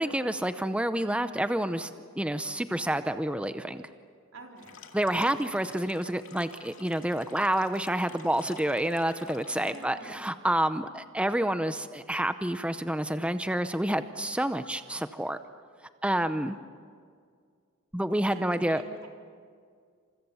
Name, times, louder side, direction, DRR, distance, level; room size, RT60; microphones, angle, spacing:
voice 1, 0.0-3.9 4.9-15.4 16.0-16.5 17.9-18.8, right 1 dB, 5° right, 10 dB, 0.6 m, -28 dB
voice 2, 4.3-5.0 9.5-10.3 16.2-16.6 18.3-19.1, right 1 dB, 90° right, 1 dB, 4.3 m, -48 dB
sound 1, 4.6-9.9, left 7 dB, 70° left, 2.2 m, -52 dB
28.5 x 27.5 x 7.1 m, 2.1 s
head